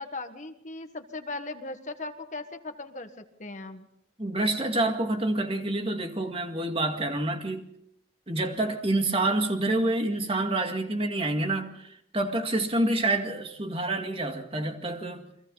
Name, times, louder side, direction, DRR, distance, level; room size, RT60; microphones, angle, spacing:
voice 1, 0.0-3.9, left 2 dB, 40° left, 7 dB, 1.6 m, -38 dB
voice 2, 4.2-7.6 8.3-15.2, right 2 dB, 30° right, 5 dB, 2.1 m, -27 dB
29.5 x 23.5 x 4.1 m, 0.75 s
head